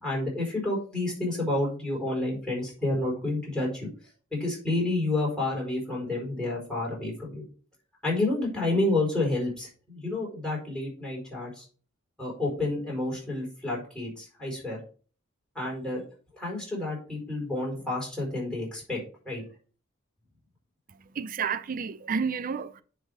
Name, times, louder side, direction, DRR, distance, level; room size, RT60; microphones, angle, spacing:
voice 1, 0.0-3.9 4.3-7.4 8.0-11.6 12.2-14.8 15.5-16.0 16.3-19.0 19.2-19.4, left 2 dB, 5° left, 4.2 m, -29 dB
voice 2, 20.9-22.8, right 6 dB, 40° right, 0.4 m, -31 dB
9.8 x 3.5 x 5.0 m
head